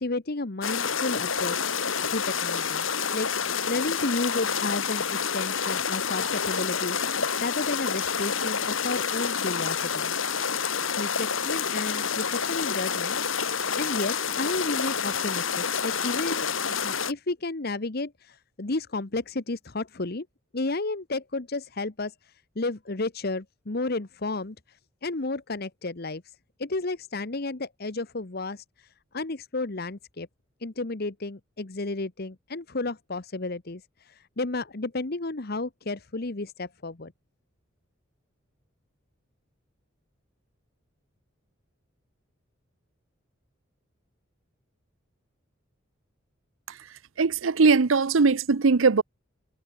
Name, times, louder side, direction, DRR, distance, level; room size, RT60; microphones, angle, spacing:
voice 1, 0.0-1.7 2.1-2.8 3.1-10.1 11.0-13.5 13.8-20.3 20.5-30.3 30.6-37.1, left 2 dB, 50° left, 1.2 m, -32 dB
sound 1, 0.6-17.1, left 6 dB, 85° left, 3.5 m, -28 dB
voice 2, 47.2-49.0, right 4 dB, 85° right, 0.7 m, -20 dB
head